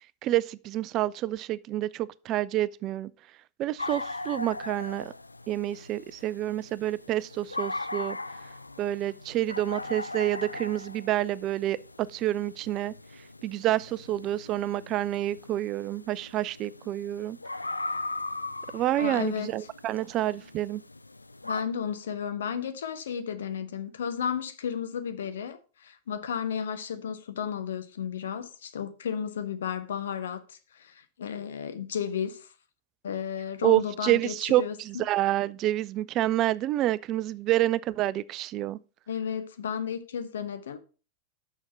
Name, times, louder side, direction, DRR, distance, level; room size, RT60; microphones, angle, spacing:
voice 1, 0.2-3.1 3.6-5.1 5.5-8.2 8.8-12.9 13.4-17.4 18.7-20.8 33.6-38.8, right 14 dB, 35° right, 0.3 m, -28 dB
sound 1, 3.8-21.6, left 2 dB, 85° left, 0.3 m, -39 dB
voice 2, 19.0-19.5 21.4-32.5 33.0-34.7 39.1-40.8, left 7 dB, 65° left, 0.9 m, -33 dB
6.3 x 6.2 x 5.7 m
figure-of-eight pair, 90°, 0 cm